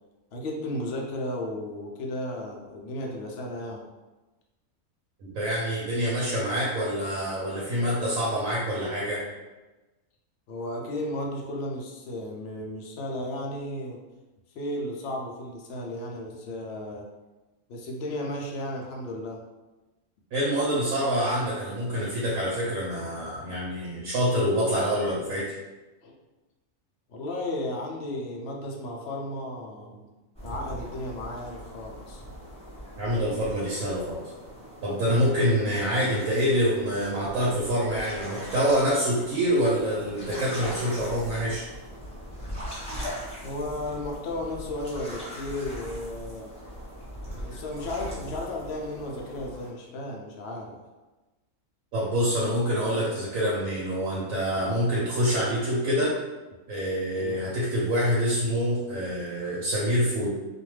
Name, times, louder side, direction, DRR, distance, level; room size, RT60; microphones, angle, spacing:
voice 1, 0.3-3.8 10.5-14.0 14.5-17.1 17.7-19.4 26.0-26.2 27.1-30.1 30.4-32.2 43.4-46.6 47.3-50.8 57.2-57.5, left 1 dB, 65° left, 0 dB, 0.6 m, -34 dB
voice 2, 5.2-9.2 20.3-25.5 33.0-34.3 34.8-41.6 51.9-56.1 56.7-60.3, equal, 75° right, -5 dB, 1.1 m, -26 dB
sound 1, 30.3-49.7, equal, 5° left, 0.7 m, -40 dB
2.5 x 2.2 x 3.1 m, 1.1 s
omnidirectional pair, 1.5 m